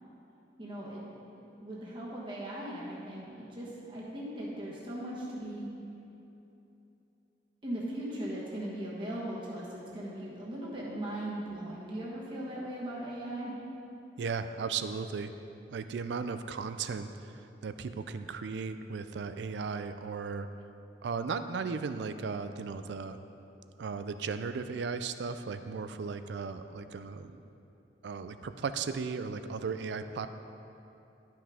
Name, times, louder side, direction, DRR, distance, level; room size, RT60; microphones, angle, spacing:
voice 1, 0.6-1.0 1.5-5.7 7.6-13.5, right 1 dB, 25° right, -6 dB, 1.2 m, -38 dB
voice 2, 14.2-15.3 15.7-20.5 21.0-23.2 23.8-27.4 28.0-30.3, right 5 dB, 75° right, 10 dB, 0.4 m, -36 dB
11.5 x 5.9 x 3.6 m, 2.9 s
head